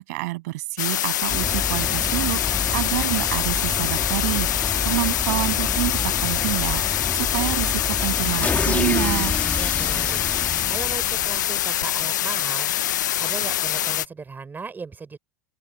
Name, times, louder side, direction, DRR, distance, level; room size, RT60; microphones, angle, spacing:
voice 1, 0.0-9.4, right 21 dB, 60° right, 8.0 m, -28 dB
sound 1, 0.8-14.1, left 12 dB, 75° left, 1.1 m, -24 dB
sound 2, 1.3-11.6, left 4 dB, 15° left, 3.7 m, -29 dB
voice 2, 9.5-15.2, right 5 dB, 20° right, 6.1 m, -37 dB
open air
hypercardioid pair, 85°, 10 cm